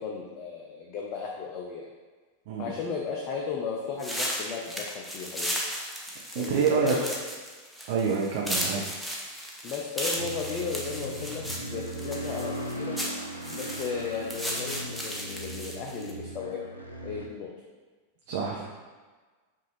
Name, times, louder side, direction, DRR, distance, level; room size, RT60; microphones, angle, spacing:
voice 1, 0.0-1.9 2.6-5.6 6.4-7.1 9.6-13.0 13.5-16.6 17.0-17.5, left 6 dB, 40° left, -1 dB, 0.5 m, -35 dB
sound 1, 4.0-16.1, equal, 5° left, 0.7 m, -35 dB
voice 2, 6.3-7.0 7.9-8.8 18.3-18.6, right 6 dB, 50° right, -3 dB, 0.6 m, -27 dB
sound 2, 10.2-17.3, right 1 dB, 90° left, 0.5 m, -38 dB
5.3 x 2.6 x 3.2 m, 1.4 s
figure-of-eight pair, 90°, 0 cm